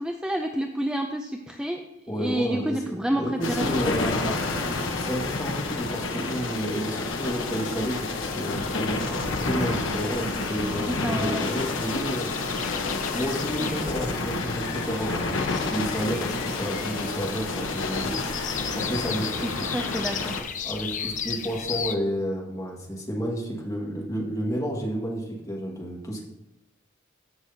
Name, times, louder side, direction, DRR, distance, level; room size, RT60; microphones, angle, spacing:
voice 1, 0.0-1.8 2.1-4.3 10.8-11.5 19.4-20.4, right 1 dB, 5° right, 4 dB, 0.4 m, -29 dB
voice 2, 2.1-4.3 4.9-9.2 9.5-12.3 13.1-18.2 18.7-19.5 20.6-26.2, equal, 15° left, -2 dB, 1.8 m, -31 dB
sound 1, 3.4-20.4, left 3 dB, 70° left, 1.0 m, -29 dB
sound 2, 7.1-22.0, left 7 dB, 40° left, 0.6 m, -37 dB
14.5 x 6.4 x 2.8 m, 0.98 s
head